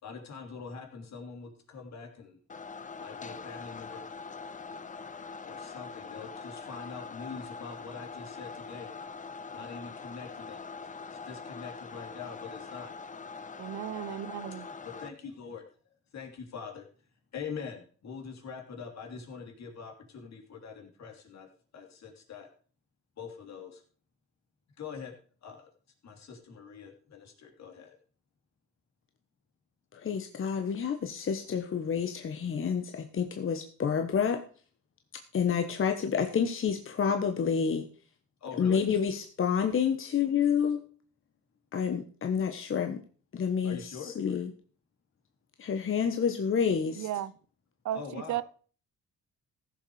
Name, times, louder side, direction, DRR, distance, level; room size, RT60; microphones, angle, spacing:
voice 1, 0.0-2.4 3.0-4.0 5.4-8.9 9.5-10.6 11.1-12.9 15.0-15.6 16.1-16.8 17.3-21.5 21.7-22.5 23.2-23.8 24.8-25.1 25.4-25.6 26.0-27.9 38.4-38.8 43.6-44.1 47.9-48.4, left 6 dB, 65° left, 3.1 m, -43 dB
sound 1, 2.5-15.1, left 4 dB, 25° left, 0.8 m, -43 dB
voice 2, 13.6-14.7 47.0-47.3 47.8-48.4, right 12 dB, 70° right, 0.7 m, -34 dB
voice 3, 29.9-34.4 35.3-37.9 38.5-40.8 41.7-43.0 43.3-44.5 45.6-47.1, left 7 dB, 45° left, 1.2 m, -29 dB
15.5 x 7.1 x 4.9 m
cardioid pair, 120°, 30 cm